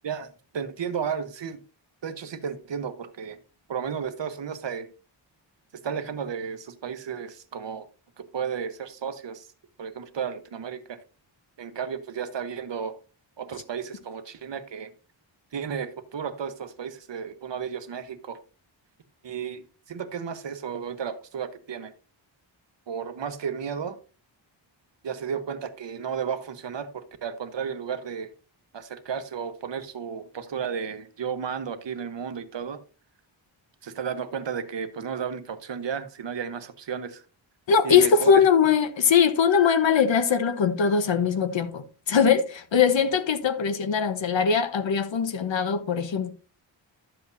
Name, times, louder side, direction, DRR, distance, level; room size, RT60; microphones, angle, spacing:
voice 1, 0.0-1.6 2.0-3.4 3.7-4.9 5.8-7.9 8.2-9.5 9.8-11.0 11.6-13.0 13.4-14.9 15.5-18.4 19.2-21.9 22.9-24.0 25.0-28.3 28.7-32.8 33.8-37.2 37.8-38.4, right 7 dB, 65° right, 1.1 m, -33 dB
voice 2, 37.7-46.3, left 6 dB, 70° left, 1.1 m, -21 dB
12.0 x 7.7 x 2.6 m
wide cardioid pair, 110°, 47 cm